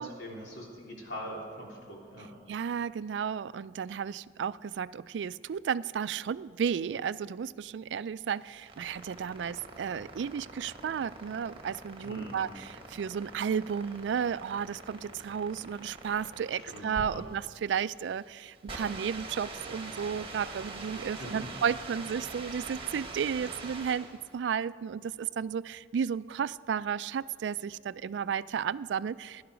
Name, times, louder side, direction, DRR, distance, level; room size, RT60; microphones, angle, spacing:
voice 1, 0.0-2.3 12.0-12.4 16.6-17.2 20.9-21.4, equal, 70° left, -3 dB, 3.5 m, -43 dB
voice 2, 2.5-24.1 24.3-29.4, right 7 dB, 80° right, 17 dB, 0.3 m, -33 dB
sound 1, 8.4-24.3, right 3 dB, 30° right, 1.6 m, -44 dB
17.0 x 11.0 x 5.1 m, 2.2 s
head